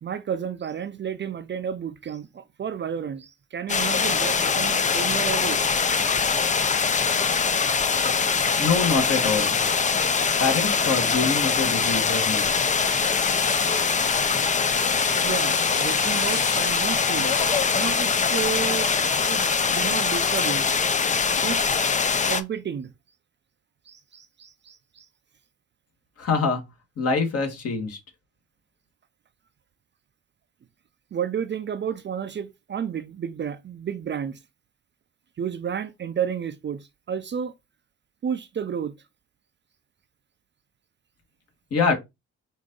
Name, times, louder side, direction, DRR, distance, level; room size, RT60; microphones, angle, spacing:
voice 1, 0.0-5.6 15.2-20.7 21.0-21.1 21.4-21.6 22.1-22.9 23.9-25.1 31.1-34.4 35.4-37.5 38.2-38.9, right 8 dB, 35° right, 0.5 m, -31 dB
sound 1, 3.7-22.4, left 5 dB, 25° left, 0.5 m, -23 dB
voice 2, 8.6-9.6 10.4-12.5 26.2-26.6 27.0-28.0 41.7-41.9, left 4 dB, 50° left, 1.8 m, -24 dB
sound 2, 12.8-19.4, left 6 dB, 75° left, 1.5 m, -37 dB
4.9 x 2.7 x 3.8 m
cardioid pair, 90°, 30 cm